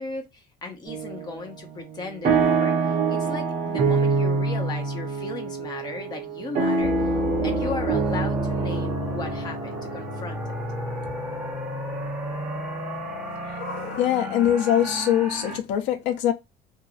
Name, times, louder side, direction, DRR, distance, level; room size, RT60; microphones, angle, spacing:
voice 1, 0.0-7.0 7.4-10.5, left 3 dB, 20° left, 0.7 m, -36 dB
sound 1, 0.9-1.4 1.8-11.8, right 4 dB, 45° right, 0.8 m, -26 dB
sound 2, 6.8-15.6, equal, 5° right, 0.9 m, -32 dB
voice 2, 13.5-16.3, left 11 dB, 80° left, 0.7 m, -23 dB
2.9 x 2.5 x 2.4 m
cardioid pair, 170°, 19 cm